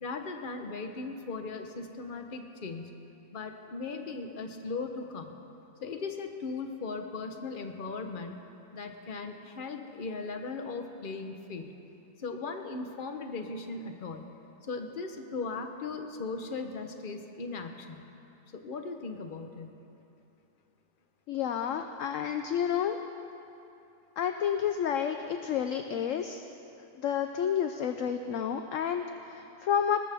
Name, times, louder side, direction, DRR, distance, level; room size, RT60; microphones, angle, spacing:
voice 1, 0.0-2.9 3.3-5.3 5.8-8.4 8.7-11.7 12.2-14.2 14.6-18.0 18.5-19.7, left 4 dB, 35° left, 5 dB, 1.0 m, -38 dB
voice 2, 21.3-23.0 24.2-26.4 27.0-30.0, left 8 dB, 65° left, 7 dB, 0.8 m, -30 dB
20.5 x 19.5 x 3.5 m, 2.8 s
omnidirectional pair, 1.8 m